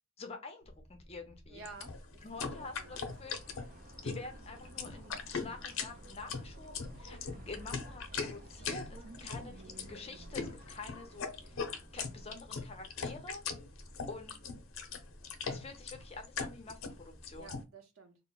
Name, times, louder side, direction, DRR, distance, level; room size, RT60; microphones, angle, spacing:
voice 1, 0.2-1.6 2.2-3.4 4.0-11.6 11.9-13.4 13.8-14.4 15.5-17.5, left 3 dB, 30° left, 0.5 m, -47 dB
sound 1, 0.6-17.5, equal, 10° right, 0.8 m, -56 dB
voice 2, 1.5-3.1 17.3-18.2, right 4 dB, 90° right, 0.7 m, -52 dB
sound 2, 1.7-17.6, left 5 dB, 90° left, 0.5 m, -40 dB
sound 3, 2.3-12.4, right 1 dB, 45° right, 0.4 m, -54 dB
2.1 x 2.1 x 3.7 m
head